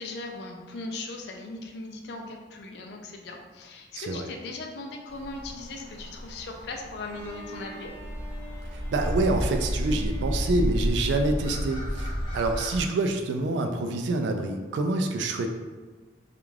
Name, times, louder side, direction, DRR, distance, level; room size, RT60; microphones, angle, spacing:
voice 1, 0.0-7.9, left 2 dB, 65° left, 3 dB, 0.4 m, -38 dB
voice 2, 3.9-4.3 8.7-15.5, right 2 dB, 75° right, 5 dB, 0.3 m, -27 dB
sound 1, 5.1-12.8, equal, 25° left, 1.0 m, -32 dB
Bowed string instrument, 6.9-11.9, right 1 dB, 5° right, 0.6 m, -47 dB
2.4 x 2.2 x 3.2 m, 1.3 s
head